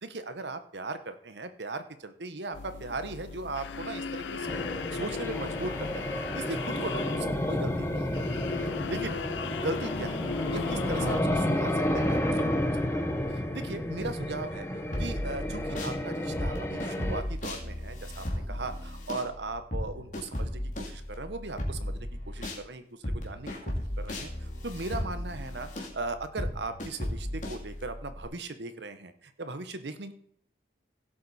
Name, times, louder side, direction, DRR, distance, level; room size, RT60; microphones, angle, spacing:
voice 1, 0.0-8.3 8.9-9.3 9.6-13.1 13.3-14.7 15.0-30.1, right 3 dB, 75° right, 10 dB, 1.1 m, -38 dB
sound 1, 2.5-11.2, left 5 dB, 85° left, 0.5 m, -37 dB
sound 2, 4.4-17.2, left 1 dB, 15° left, 1.0 m, -31 dB
sound 3, 14.9-16.0 16.4-22.6 23.0-28.2, left 1 dB, 45° left, 2.5 m, -35 dB
16.5 x 7.5 x 4.2 m, 0.63 s
head